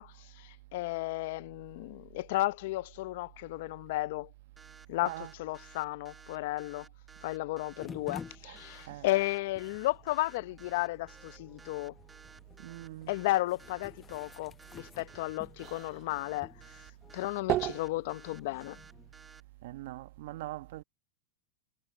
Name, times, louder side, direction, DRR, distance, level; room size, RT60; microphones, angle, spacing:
voice 1, 0.0-4.3 4.9-6.9 7.2-11.9 13.1-16.5 17.1-18.8, left 18 dB, 65° left, 0.7 m, -34 dB
sound 1, 4.6-19.4, right 4 dB, 15° right, 2.0 m, -55 dB
voice 2, 5.0-5.3 8.4-8.6 8.9-9.1 12.6-13.2 19.6-20.8, right 16 dB, 70° right, 1.2 m, -42 dB
sound 2, 7.8-19.1, left 6 dB, 20° left, 0.8 m, -52 dB
sound 3, 13.2-18.9, right 15 dB, 45° right, 1.6 m, -39 dB
hypercardioid pair, 115°, 0 cm